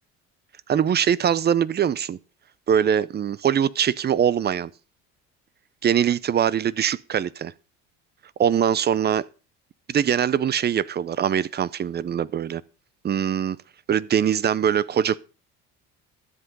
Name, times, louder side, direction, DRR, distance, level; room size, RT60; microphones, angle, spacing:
voice 1, 0.7-2.2 2.7-4.7 5.8-7.5 8.4-9.3 9.9-12.6 13.0-13.6 13.9-15.2, right 8 dB, 30° right, 0.7 m, -22 dB
13.0 x 7.8 x 5.4 m
supercardioid pair, 95°, 32 cm